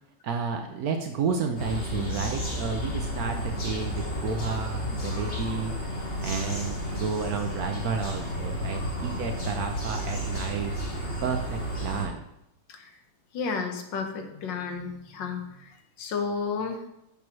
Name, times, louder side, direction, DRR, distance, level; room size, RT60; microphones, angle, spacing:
voice 1, 0.2-5.8 6.2-10.7 11.2-12.2, right 5 dB, 70° right, 4 dB, 0.9 m, -31 dB
sound 1, 1.6-12.1, equal, 40° left, 1.8 m, -32 dB
voice 2, 13.3-16.8, left 5 dB, 80° left, 5 dB, 1.6 m, -32 dB
6.9 x 3.1 x 6.0 m, 0.81 s
omnidirectional pair, 2.0 m